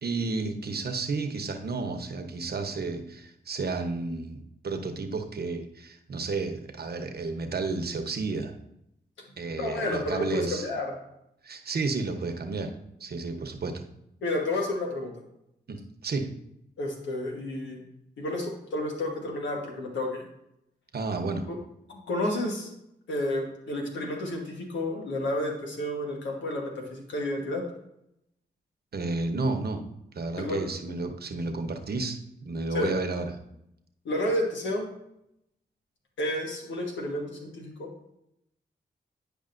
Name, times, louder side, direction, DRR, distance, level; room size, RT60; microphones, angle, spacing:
voice 1, 0.0-8.5 9.4-10.7 11.4-12.7 13.0-13.8 15.7-16.3 20.9-21.4 28.9-29.8 30.1-33.3, right 3 dB, 60° right, 6 dB, 1.0 m, -32 dB
voice 2, 9.6-10.9 14.2-15.1 16.8-17.8 18.2-20.2 21.5-21.6 21.9-22.7 23.1-27.6 30.4-30.6 32.7-32.9 34.0-34.9 36.2-37.9, left 1 dB, 90° left, 0 dB, 1.3 m, -31 dB
9.9 x 5.0 x 2.6 m, 0.81 s
cardioid pair, 45°, 19 cm